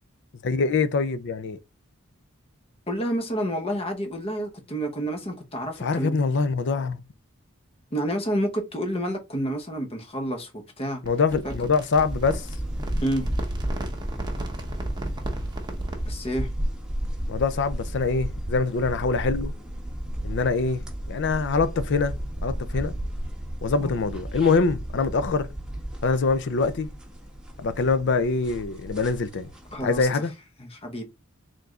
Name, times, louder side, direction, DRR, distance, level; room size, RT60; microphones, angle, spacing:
voice 1, 0.4-1.6 5.8-7.0 11.0-12.5 17.3-19.5 20.2-20.8 21.1-22.2 22.4-22.9 23.6-25.5 26.0-26.9 27.6-29.5 29.8-30.3, left 4 dB, 60° left, 0.5 m, -24 dB
voice 2, 2.9-6.2 7.9-11.0 11.4-11.5 13.0-13.3 16.0-16.5 23.8-24.0 29.7-30.2 30.6-31.0, equal, 30° left, 1.0 m, -29 dB
sound 1, 11.0-16.1, right 1 dB, 20° right, 0.9 m, -35 dB
sound 2, 11.9-30.1, equal, 5° right, 1.4 m, -33 dB
4.7 x 3.8 x 2.4 m
head